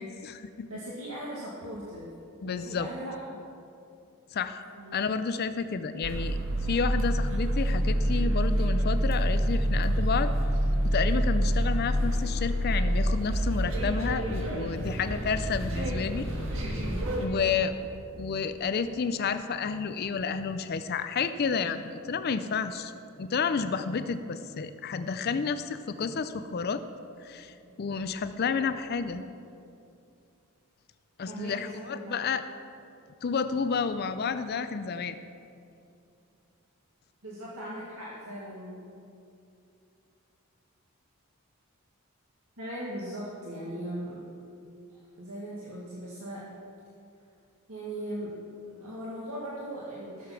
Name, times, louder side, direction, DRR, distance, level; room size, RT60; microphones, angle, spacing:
voice 1, 0.0-0.7 2.4-2.9 4.3-4.6 4.9-10.3 10.9-16.3 17.2-17.9 18.2-22.9 23.2-26.8 27.2-29.2 31.2-32.4 33.2-35.2, left 5 dB, 45° left, 11 dB, 0.4 m, -30 dB
voice 2, 0.7-2.1 2.4-3.4 4.7-5.0 17.4-17.7 25.0-25.2 26.4-26.5 27.4-27.9 28.4-28.6 31.3-32.2 37.2-38.8 42.6-44.2 44.9-46.5 47.7-48.4 48.7-50.3, right 1 dB, 85° right, -6 dB, 1.9 m, -39 dB
sound 1, 6.0-17.3, equal, 60° right, 1.7 m, -27 dB
14.5 x 6.9 x 5.9 m, 2.6 s
head